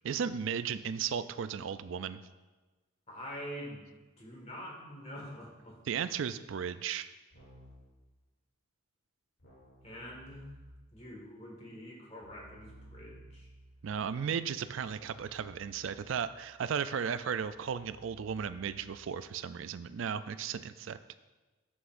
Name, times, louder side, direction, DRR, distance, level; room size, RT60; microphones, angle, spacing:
voice 1, 0.0-2.2 5.9-7.1 13.8-21.0, right 7 dB, 60° right, 13 dB, 0.3 m, -35 dB
voice 2, 3.1-5.8 9.8-10.5 10.9-13.5, equal, 30° left, -2 dB, 1.7 m, -45 dB
Keyboard (musical), 7.3-8.0 9.4-11.0 12.2-19.3, right 1 dB, 65° left, 2.7 m, -57 dB
11.5 x 7.8 x 2.6 m, 1.2 s
head